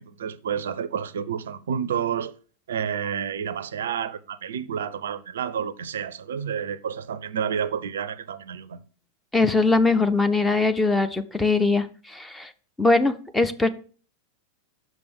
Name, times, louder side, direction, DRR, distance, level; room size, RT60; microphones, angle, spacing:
voice 1, 0.0-2.3 2.7-8.8, right 8 dB, 65° right, 0.4 m, -30 dB
voice 2, 9.3-12.5 12.8-13.7, left 3 dB, 10° left, 0.6 m, -21 dB
6.3 x 5.1 x 5.0 m
figure-of-eight pair, 90°, 0 cm